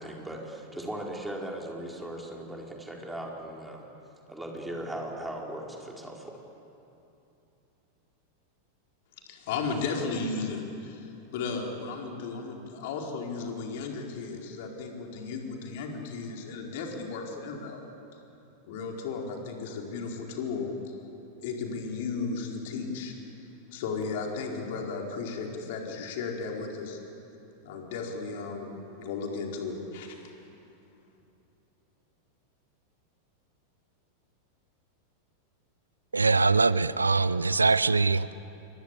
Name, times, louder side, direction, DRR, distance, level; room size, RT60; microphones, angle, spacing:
voice 1, 0.0-3.9 4.3-6.4, right 1 dB, 5° right, -1 dB, 4.6 m, -38 dB
voice 2, 9.3-17.8 18.6-20.9 21.4-23.1 23.7-27.0 27.6-30.3, left 4 dB, 50° left, 1 dB, 4.4 m, -35 dB
voice 3, 36.1-38.3, right 4 dB, 80° right, 18 dB, 0.6 m, -23 dB
28.5 x 24.5 x 8.4 m, 2.8 s
figure-of-eight pair, 90°, 0 cm